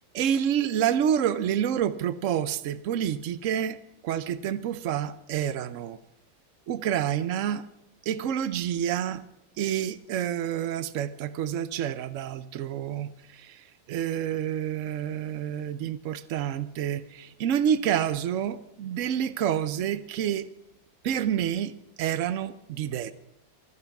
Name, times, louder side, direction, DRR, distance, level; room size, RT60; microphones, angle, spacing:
voice 1, 0.1-6.0 6.7-7.6 8.0-9.2 9.6-20.5 21.0-21.7 22.0-23.1, right 9 dB, 90° right, 0.6 m, -28 dB
14.5 x 14.0 x 5.9 m
omnidirectional pair, 2.1 m